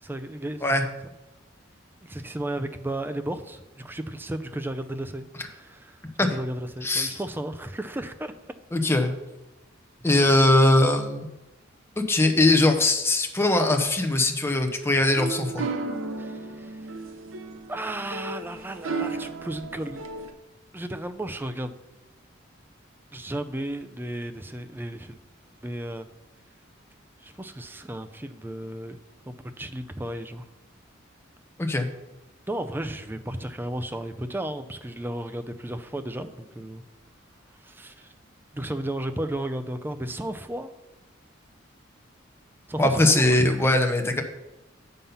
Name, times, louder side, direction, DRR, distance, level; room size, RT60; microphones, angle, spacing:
voice 1, 0.0-0.7 2.0-8.3 16.2-17.0 17.7-20.0 20.7-21.7 23.1-25.2 25.6-26.1 27.2-29.0 29.3-30.5 32.5-36.8 37.6-38.1 38.5-40.7 42.7-43.7, right 1 dB, 10° right, 8 dB, 0.4 m, -34 dB
voice 2, 6.8-7.2 8.7-9.1 10.0-11.3 12.0-15.6 31.6-31.9 42.8-44.2, left 2 dB, 15° left, 5 dB, 0.8 m, -21 dB
sound 1, 14.8-20.3, right 3 dB, 90° right, 0.8 m, -34 dB
7.2 x 5.5 x 5.5 m, 1.0 s
head